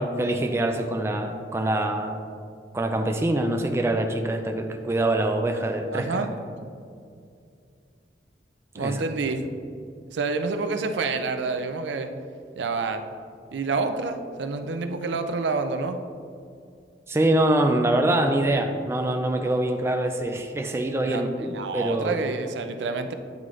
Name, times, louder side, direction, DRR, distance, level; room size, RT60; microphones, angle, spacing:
voice 1, 0.0-2.2 2.7-6.3 8.7-9.0 17.1-22.2, right 1 dB, 15° right, 4 dB, 0.3 m, -24 dB
voice 2, 5.9-6.3 8.8-9.4 10.1-12.1 12.6-13.0 13.5-16.0 21.0-23.1, right 4 dB, 80° right, 8 dB, 0.4 m, -28 dB
9.4 x 3.8 x 3.1 m, 2.3 s
head